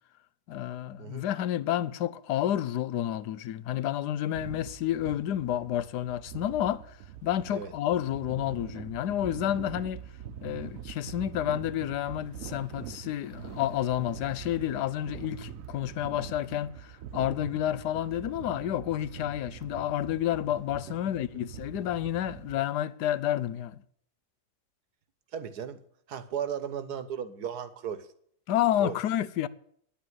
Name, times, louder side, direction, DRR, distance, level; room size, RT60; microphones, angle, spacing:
voice 1, 0.5-10.0 10.4-23.8 28.5-29.5, left 12 dB, 85° left, 1.3 m, -30 dB
sound 1, 4.3-22.6, right 8 dB, 60° right, 1.1 m, -44 dB
voice 2, 25.3-25.8 26.1-28.1 28.8-29.0, right 8 dB, 75° right, 1.5 m, -35 dB
10.5 x 8.6 x 9.3 m
omnidirectional pair, 1.7 m